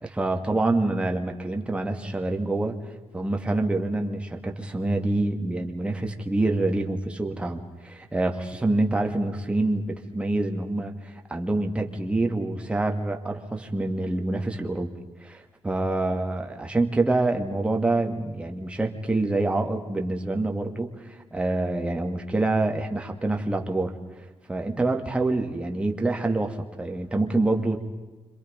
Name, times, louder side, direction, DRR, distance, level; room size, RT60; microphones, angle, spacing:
voice 1, 0.0-2.8 3.1-14.9 15.2-23.9 24.5-27.8, right 2 dB, 10° right, 2 dB, 2.3 m, -26 dB
29.5 x 26.5 x 5.4 m, 1.2 s
cardioid pair, 150°, 10 cm